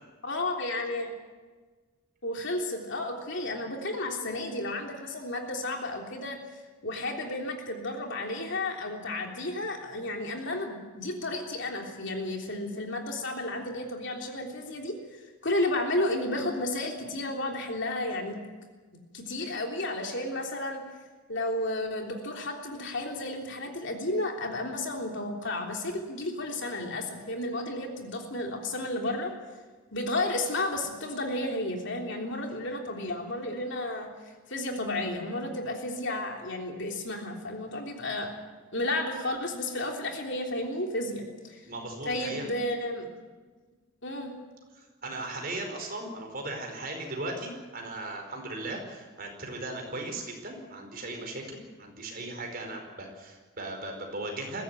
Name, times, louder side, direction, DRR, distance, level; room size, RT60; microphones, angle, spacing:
voice 1, 0.2-1.1 2.2-6.4 6.8-18.4 19.1-20.8 21.3-29.3 29.9-34.1 34.5-38.3 38.7-41.6 42.0-43.1 44.0-44.3, left 1 dB, 55° left, 2 dB, 3.4 m, -32 dB
voice 2, 41.6-42.4 44.7-54.6, right 2 dB, 40° right, 3 dB, 4.9 m, -37 dB
21.5 x 16.0 x 9.3 m, 1.3 s
head